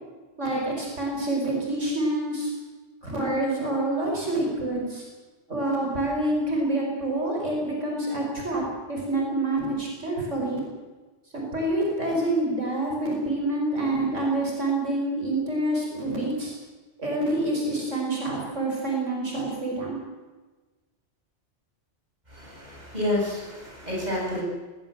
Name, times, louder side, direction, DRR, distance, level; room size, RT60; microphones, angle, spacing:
voice 1, 0.4-2.5 3.0-5.0 5.5-10.6 11.3-16.5 17.0-20.0, right 1 dB, 80° right, -1 dB, 5.6 m, -27 dB
voice 2, 22.3-24.4, left 1 dB, 35° right, -3 dB, 8.0 m, -29 dB
20.5 x 19.5 x 7.6 m, 1.3 s
omnidirectional pair, 1.2 m